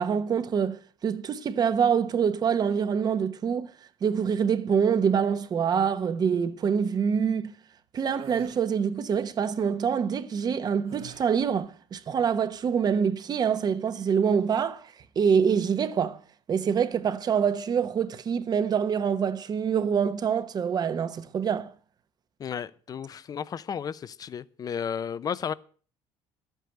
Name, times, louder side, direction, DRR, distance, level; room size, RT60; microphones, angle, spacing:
voice 1, 0.0-3.7 4.0-7.5 7.9-14.9 15.2-16.2 16.5-21.7, right 7 dB, 35° right, 1.0 m, -25 dB
sound 1, 8.1-8.6 10.9-11.6, right 8 dB, 60° right, 2.5 m, -46 dB
voice 2, 22.4-25.5, left 7 dB, 35° left, 0.7 m, -33 dB
12.0 x 8.3 x 7.9 m
cardioid pair, 130°, 11 cm